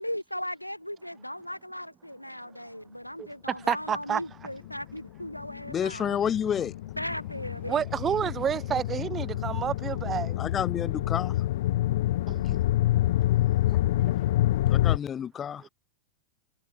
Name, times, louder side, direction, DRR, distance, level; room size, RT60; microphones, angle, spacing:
voice 1, 0.0-6.2 7.0-7.8, equal, 90° left, 1.4 m, -37 dB
voice 2, 3.2-4.2 7.7-10.4 12.3-12.6 14.0-14.1, right 8 dB, 25° right, 0.8 m, -30 dB
sound 1, 4.6-15.0, left 14 dB, 55° left, 1.2 m, -27 dB
voice 3, 5.7-6.7 10.4-11.4 13.6-13.8 14.7-15.6, left 8 dB, 25° left, 0.5 m, -30 dB
figure-of-eight pair, 90°, 0 cm